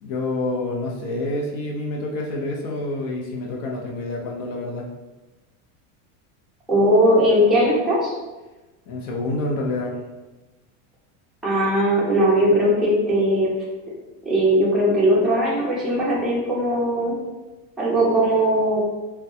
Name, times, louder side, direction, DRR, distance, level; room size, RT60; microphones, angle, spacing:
voice 1, 0.0-4.8 8.9-9.9, left 2 dB, 75° left, -1 dB, 0.8 m, -27 dB
voice 2, 6.7-8.1 11.4-13.5 14.2-17.2 17.8-18.8, equal, ahead, -7 dB, 0.3 m, -19 dB
3.5 x 2.3 x 2.8 m, 1.1 s
cardioid pair, 160°, 39 cm